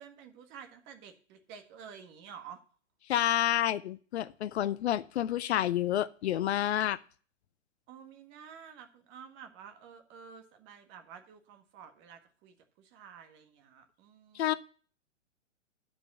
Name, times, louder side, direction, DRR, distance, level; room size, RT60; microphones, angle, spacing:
voice 1, 0.0-2.6 7.9-14.6, right 7 dB, 30° right, 7 dB, 1.7 m, -51 dB
voice 2, 3.1-7.0 14.3-14.5, left 12 dB, 60° left, 16 dB, 0.7 m, -29 dB
10.5 x 5.2 x 7.2 m, 0.40 s
hypercardioid pair, 130°, 37 cm